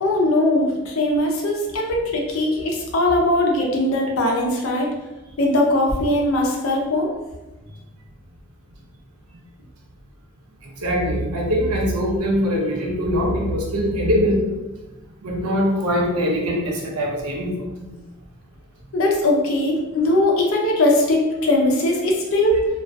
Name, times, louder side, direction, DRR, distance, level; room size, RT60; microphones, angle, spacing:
voice 1, 0.0-4.9 5.4-7.1 18.9-22.7, left 1 dB, 65° left, 0 dB, 0.5 m, -20 dB
voice 2, 10.8-14.4 15.2-17.7, equal, 85° right, -1 dB, 0.6 m, -22 dB
2.5 x 2.3 x 2.2 m, 1.1 s
head